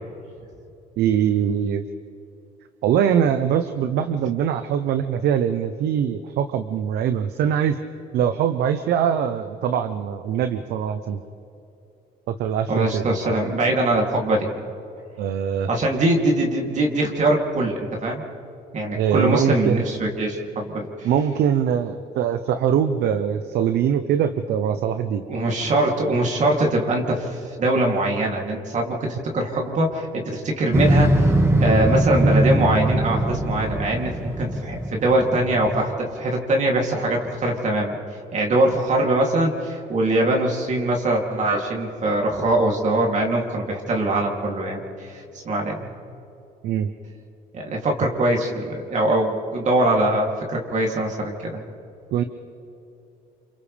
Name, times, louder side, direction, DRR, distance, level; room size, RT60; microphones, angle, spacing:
voice 1, 1.0-1.9 2.8-7.8 8.1-11.2 12.3-13.3 15.2-15.7 18.9-19.8 21.0-25.3 46.6-46.9 52.1-52.2, right 8 dB, 75° right, 9 dB, 0.9 m, -22 dB
voice 2, 12.7-14.5 15.7-18.2 18.7-21.1 25.3-31.3 31.6-35.9 36.2-38.0 38.3-45.9 47.5-51.6, right 1 dB, 45° right, 0 dB, 3.0 m, -22 dB
Motorcycle, 30.7-36.0, right 1 dB, 15° right, 2.0 m, -21 dB
29.0 x 26.0 x 3.5 m, 2.9 s
cardioid pair, 110°, 17 cm